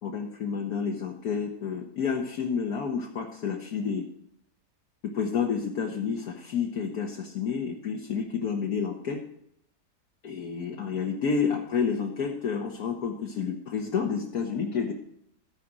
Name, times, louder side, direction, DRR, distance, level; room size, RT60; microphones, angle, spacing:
voice 1, 0.0-4.1 5.1-9.2 10.2-14.9, left 6 dB, 65° left, 1 dB, 1.5 m, -30 dB
13.5 x 4.9 x 7.3 m, 0.72 s
omnidirectional pair, 1.8 m